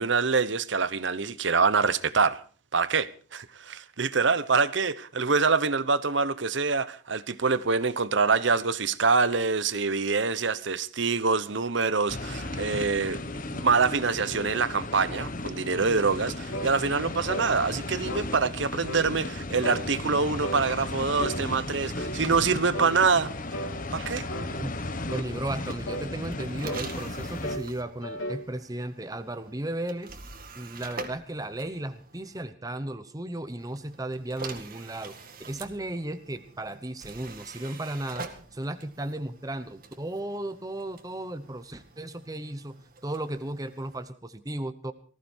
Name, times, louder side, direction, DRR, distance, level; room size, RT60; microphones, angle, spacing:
voice 1, 0.0-2.4 2.7-13.2 13.5-23.3 23.9-24.2, right 4 dB, 65° right, 1.0 m, -25 dB
sound 1, 12.1-27.6, left 2 dB, 40° left, 1.3 m, -35 dB
sound 2, 16.5-16.8 17.3-17.5 18.1-18.3 18.8-19.1 19.6-19.9 20.4-20.6 21.2-21.4 22.0-22.2 22.7-23.0 23.5-23.8 24.3-24.5 25.1-25.3 25.8-26.1 26.6-26.9 27.4-27.7 28.0-28.4, right 1 dB, 75° left, 3.4 m, -35 dB
voice 2, 25.1-30.2 30.5-35.1 35.5-44.9, right 1 dB, 20° right, 0.9 m, -35 dB
sound 3, 25.6-32.5 33.6-44.1, right 4 dB, 45° right, 1.9 m, -46 dB
19.0 x 15.0 x 4.5 m
head